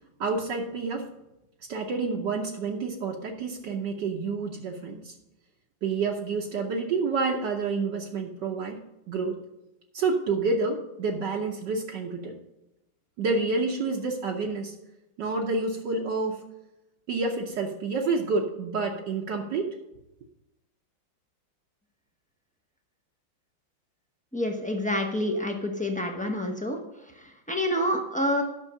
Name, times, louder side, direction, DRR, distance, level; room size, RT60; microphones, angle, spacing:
voice 1, 0.2-1.1 1.7-5.1 5.8-8.8 9.1-9.4 9.9-12.4 13.2-14.7 15.2-16.4 17.1-19.7, right 4 dB, 65° right, 0 dB, 1.4 m, -28 dB
voice 2, 24.3-26.8 27.2-28.4, left 1 dB, 10° left, 2 dB, 0.4 m, -28 dB
9.9 x 6.2 x 5.5 m, 0.93 s
omnidirectional pair, 2.1 m